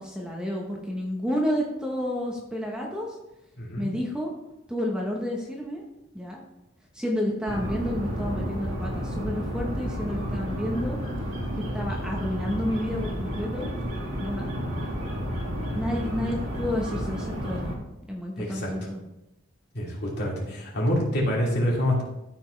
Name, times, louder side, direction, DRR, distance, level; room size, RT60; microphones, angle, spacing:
voice 1, 0.0-3.2 3.8-4.3 4.7-5.8 6.1-6.4 6.9-11.0 11.7-13.7 14.2-14.5 15.7-17.7 18.1-19.0, left 1 dB, 5° right, -1 dB, 0.9 m, -30 dB
voice 2, 3.6-3.9 14.4-14.7 18.4-18.7 19.7-22.0, left 1 dB, 55° left, -4 dB, 2.8 m, -27 dB
sound 1, 7.4-17.7, equal, 80° right, 2.2 m, -31 dB
13.0 x 5.2 x 3.3 m, 0.92 s
head